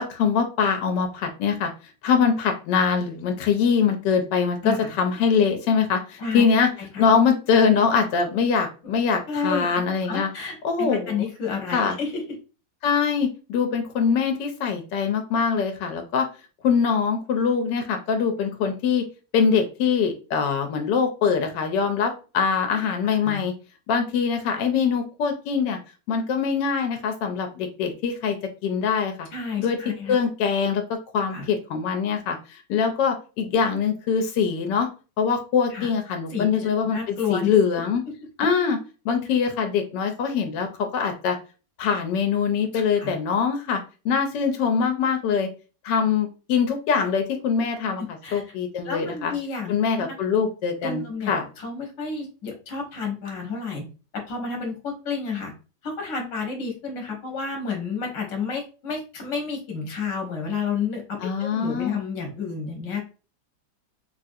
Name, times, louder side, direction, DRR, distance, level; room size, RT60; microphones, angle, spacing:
voice 1, 0.0-1.7 2.0-6.7 7.0-10.3 10.6-11.3 11.7-11.9 12.8-16.3 16.6-19.1 19.3-23.5 23.9-25.8 26.1-28.4 28.6-29.3 29.6-29.8 30.1-32.4 32.7-34.9 35.2-38.0 38.4-38.8 39.0-40.7 40.9-41.4 41.8-43.8 44.0-45.5 45.8-48.0 48.3-49.3 49.7-51.4 61.2-62.0, left 6 dB, 85° left, 5 dB, 1.2 m, -23 dB
voice 2, 9.3-9.6 10.1-12.4 23.2-23.5 29.3-30.2 31.3-31.5 35.7-35.9 36.3-37.5 42.7-43.1 48.0-48.5 48.8-49.7 50.0-50.1 50.8-53.9 54.1-55.5 55.8-63.0, left 5 dB, 50° left, 2 dB, 1.1 m, -30 dB
3.5 x 2.4 x 2.6 m, 0.34 s
omnidirectional pair, 1.9 m